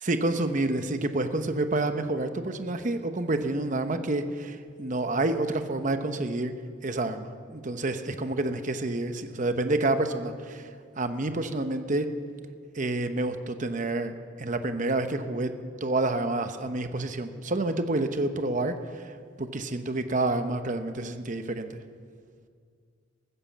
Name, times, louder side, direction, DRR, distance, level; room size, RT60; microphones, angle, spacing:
voice 1, 0.0-6.5 6.8-10.7 11.0-12.1 12.7-14.1 14.4-15.5 15.8-21.8, right 2 dB, 40° right, 8 dB, 0.9 m, -28 dB
14.5 x 12.5 x 7.3 m, 2.1 s
head